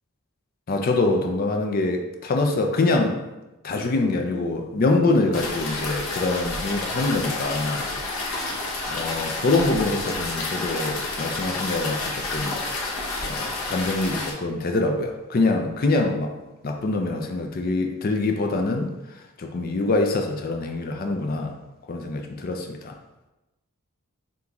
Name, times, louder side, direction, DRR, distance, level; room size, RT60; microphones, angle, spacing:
voice 1, 0.7-3.2 3.6-7.9 8.9-12.6 13.2-16.3 16.6-18.9 19.4-21.5 21.9-22.9, left 2 dB, 40° left, 3 dB, 0.4 m, -24 dB
sound 1, 5.3-14.3, left 2 dB, 70° left, 0.9 m, -30 dB
3.9 x 3.4 x 2.8 m, 1.0 s
head